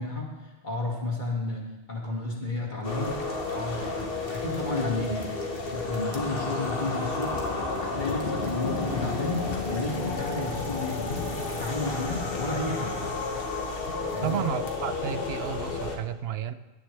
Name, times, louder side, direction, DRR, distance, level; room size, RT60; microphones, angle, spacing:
voice 1, 0.0-3.2 3.5-7.4 7.8-13.1 14.0-14.4, left 2 dB, 50° left, -2 dB, 2.3 m, -32 dB
sound 1, 2.8-16.0, left 3 dB, 65° left, 1.5 m, -31 dB
sound 2, 4.1-12.1, right 1 dB, 55° right, 1.9 m, -47 dB
voice 2, 14.2-16.5, right 9 dB, 80° right, 12 dB, 0.9 m, -32 dB
18.0 x 9.7 x 3.3 m, 1.1 s
omnidirectional pair, 1.0 m